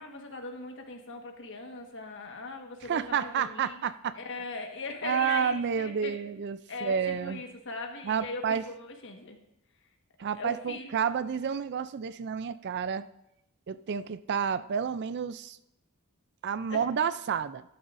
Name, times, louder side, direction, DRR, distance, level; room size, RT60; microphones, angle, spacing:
voice 1, 0.0-3.8 4.1-6.1 6.7-9.4 10.4-11.1 13.9-14.0 16.7-16.8, left 3 dB, 60° left, 3 dB, 1.4 m, -40 dB
voice 2, 2.8-4.2 5.0-7.4 8.0-8.6 10.2-13.0 13.7-15.6 16.4-17.6, right 7 dB, 50° right, 14 dB, 0.4 m, -30 dB
12.0 x 11.5 x 2.6 m, 0.83 s
head